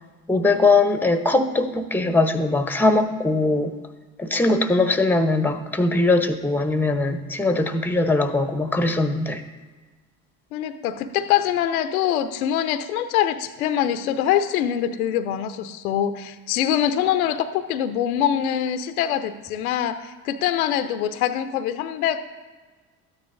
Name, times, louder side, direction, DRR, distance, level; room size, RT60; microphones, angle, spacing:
voice 1, 0.3-3.7 4.2-9.4, left 2 dB, 5° left, 9 dB, 0.9 m, -21 dB
voice 2, 10.5-22.2, left 10 dB, 80° left, 10 dB, 0.7 m, -24 dB
13.0 x 9.4 x 2.6 m, 1.4 s
hypercardioid pair, 60°, 42 cm